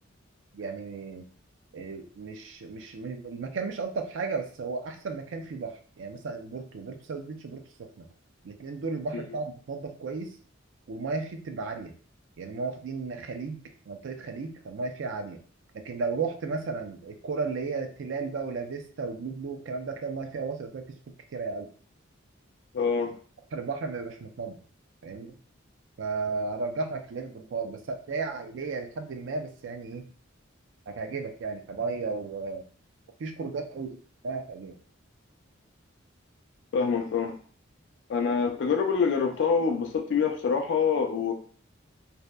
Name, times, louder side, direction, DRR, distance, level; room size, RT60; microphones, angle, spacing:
voice 1, 0.5-1.3 1.7-8.1 8.4-10.4 10.9-11.9 12.4-15.4 15.7-20.8 21.3-21.7 23.5-24.6 25.0-25.4 26.0-30.0 30.9-32.6 33.2-34.0 34.2-34.8, right 4 dB, 65° right, 6 dB, 0.4 m, -34 dB
voice 2, 22.7-23.1 36.7-37.3 38.1-41.3, left 5 dB, 60° left, 4 dB, 0.3 m, -25 dB
2.7 x 2.1 x 2.2 m, 0.43 s
head